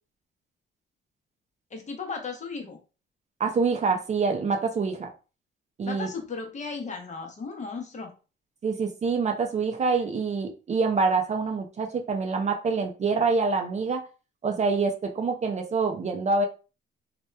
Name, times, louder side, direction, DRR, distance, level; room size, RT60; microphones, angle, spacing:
voice 1, 1.7-2.8 5.8-8.1, left 4 dB, 35° left, 3 dB, 0.7 m, -35 dB
voice 2, 3.4-5.1 5.8-6.1 8.6-14.0 14.4-16.5, right 4 dB, 35° right, 3 dB, 0.4 m, -26 dB
2.8 x 2.1 x 2.2 m, 0.33 s
cardioid pair, 90°, 20 cm